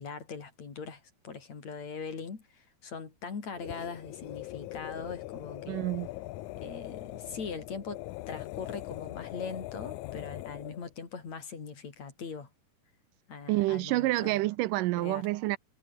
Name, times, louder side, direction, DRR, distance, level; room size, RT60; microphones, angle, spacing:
voice 1, 0.0-5.8 6.6-12.5 13.3-14.5 15.0-15.2, left 5 dB, 55° left, 4.9 m, -41 dB
sound 1, 3.5-10.9, left 18 dB, 80° left, 1.9 m, -41 dB
voice 2, 5.7-6.1 13.5-15.6, right 18 dB, 80° right, 2.2 m, -28 dB
omnidirectional pair, 3.8 m